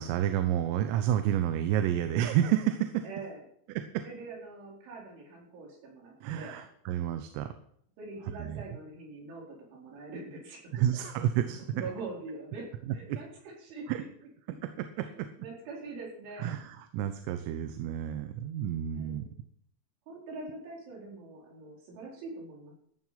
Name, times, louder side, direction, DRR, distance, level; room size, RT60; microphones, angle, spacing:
voice 1, 0.0-3.0 3.8-4.0 6.2-7.5 8.4-8.6 10.7-11.7 13.1-13.2 13.9-14.0 14.8-15.3 16.4-19.3, right 11 dB, 80° right, 9 dB, 3.5 m, -30 dB
voice 2, 3.0-3.4 4.0-6.6 8.0-10.6 11.7-14.0 15.0-16.6 18.9-19.3 20.1-22.8, right 3 dB, 65° right, -2 dB, 6.7 m, -43 dB
14.5 x 9.1 x 5.8 m, 0.67 s
omnidirectional pair, 5.9 m